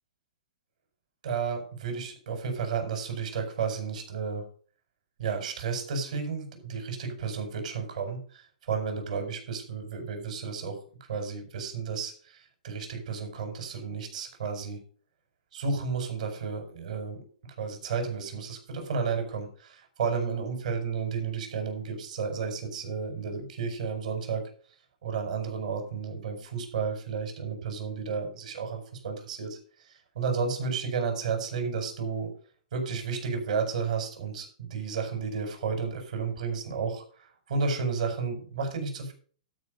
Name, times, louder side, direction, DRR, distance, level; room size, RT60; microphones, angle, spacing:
voice 1, 1.2-4.4 5.2-10.8 11.1-14.8 15.5-24.4 25.0-32.3 32.7-39.1, right 5 dB, 70° right, 4 dB, 5.3 m, -32 dB
12.5 x 5.4 x 6.7 m, 0.43 s
hypercardioid pair, 145°, 4 cm